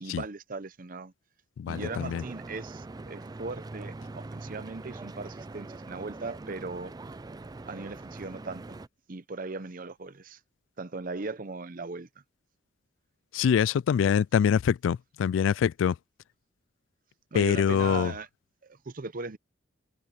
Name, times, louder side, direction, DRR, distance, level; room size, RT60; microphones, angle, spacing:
voice 1, 0.0-1.1 1.7-6.9 7.7-8.8 9.1-10.4 10.8-12.1 17.3-18.3 18.6-19.4, right 3 dB, 45° right, 0.7 m, -38 dB
voice 2, 1.6-2.2 13.3-15.9 17.3-18.1, left 8 dB, 80° left, 0.3 m, -24 dB
Stream / Boat Water vehicle, 1.7-8.9, right 2 dB, 20° right, 0.4 m, -43 dB
head